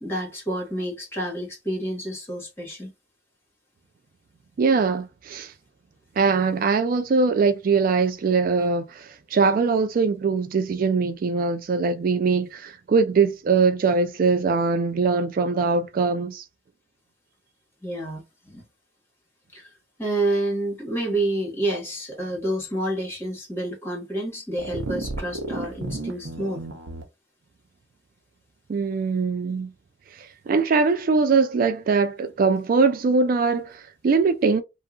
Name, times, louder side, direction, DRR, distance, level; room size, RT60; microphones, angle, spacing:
voice 1, 0.0-2.9 17.8-18.6 19.5-19.7 20.0-26.6, right 1 dB, 15° left, 1.4 m, -29 dB
voice 2, 4.6-5.5 6.2-16.4 28.7-29.7 30.1-34.6, right 4 dB, 50° right, 0.3 m, -22 dB
sound 1, 24.6-27.0, right 2 dB, 70° right, 0.7 m, -33 dB
2.8 x 2.3 x 2.4 m
head